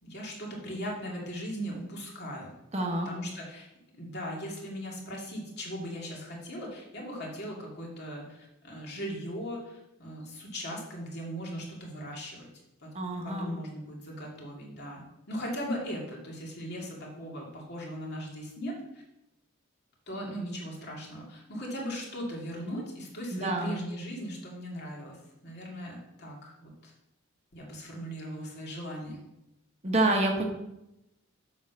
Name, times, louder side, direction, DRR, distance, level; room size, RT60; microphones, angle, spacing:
voice 1, 0.0-2.5 3.0-3.7 3.9-12.5 12.8-12.9 13.2-19.0 20.1-25.2 25.4-26.9 27.5-29.2, equal, 50° left, -2 dB, 2.5 m, -38 dB
voice 2, 2.7-3.1 12.9-13.6 23.3-23.8 29.8-30.5, right 2 dB, 30° right, 2 dB, 1.2 m, -28 dB
7.5 x 5.6 x 5.9 m, 0.89 s
head